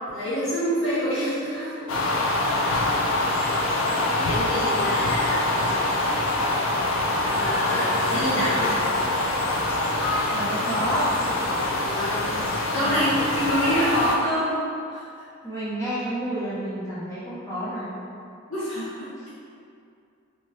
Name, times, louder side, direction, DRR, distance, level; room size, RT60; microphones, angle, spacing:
voice 1, 0.1-1.9 4.2-5.6 7.2-8.8 11.8-12.3 12.7-14.6 14.9-15.0 18.5-19.3, equal, 90° left, -11 dB, 1.2 m, -27 dB
sound 1, 1.9-14.2, left 2 dB, 70° left, 0.4 m, -24 dB
voice 2, 3.8-4.7 8.3-8.5 10.3-11.1 12.7-13.1 15.4-18.0, right 1 dB, 15° left, -11 dB, 0.8 m, -31 dB
2.7 x 2.2 x 3.1 m, 2.5 s
head